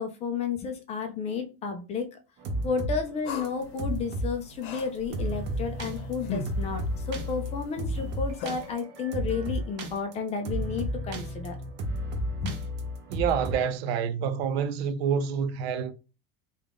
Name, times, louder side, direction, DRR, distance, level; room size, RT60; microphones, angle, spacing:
voice 1, 0.0-2.2 2.6-6.8 7.1-11.6 12.4-12.6, left 5 dB, 20° left, 0.4 m, -32 dB
sound 1, 2.4-3.0 3.3-4.4 4.6-4.8 5.1-13.5, equal, 35° right, 0.7 m, -32 dB
sound 2, 3.2-8.7, left 4 dB, 65° left, 0.8 m, -41 dB
voice 2, 13.1-15.9, right 7 dB, 85° right, 0.6 m, -27 dB
3.5 x 2.3 x 3.6 m
supercardioid pair, 160°, 30 cm